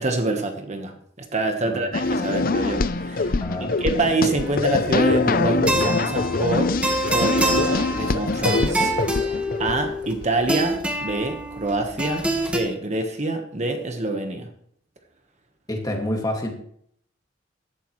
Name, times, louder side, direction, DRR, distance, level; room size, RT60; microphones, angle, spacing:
voice 1, 0.0-6.7 7.1-8.9 9.6-14.5, right 2 dB, 35° right, 5 dB, 1.3 m, -26 dB
sound 1, 1.9-10.2, left 3 dB, 45° left, 0.6 m, -24 dB
sound 2, 4.4-12.6, right 1 dB, 5° right, 1.5 m, -27 dB
voice 2, 15.7-16.5, left 1 dB, 20° left, 1 dB, 2.2 m, -28 dB
16.0 x 12.0 x 3.2 m, 0.66 s
head